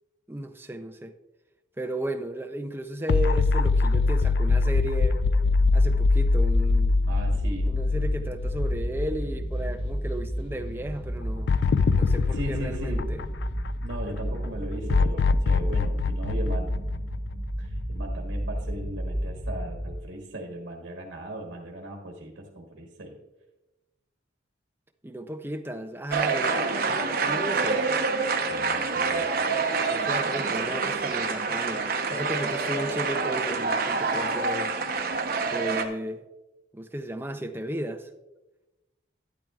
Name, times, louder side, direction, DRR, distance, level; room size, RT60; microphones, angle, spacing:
voice 1, 0.3-1.2 1.8-5.2 5.7-7.0 7.6-11.5 11.9-13.2 25.0-27.8 29.5-31.8 32.1-34.8 35.5-36.2 36.7-38.1, right 1 dB, 10° right, 0.5 m, -34 dB
sound 1, 3.1-9.4 9.8-9.9 11.5-13.9 14.9-17.7, left 4 dB, 60° left, 0.3 m, -23 dB
sound 2, 5.1-19.9, equal, 10° left, 1.0 m, -31 dB
voice 2, 7.1-7.7 12.3-13.2 13.8-16.8 17.6-23.2 28.4-29.4, right 1 dB, 70° right, 1.3 m, -38 dB
sound 3, 26.1-35.8, right 4 dB, 50° right, 0.9 m, -27 dB
12.0 x 10.0 x 2.4 m
head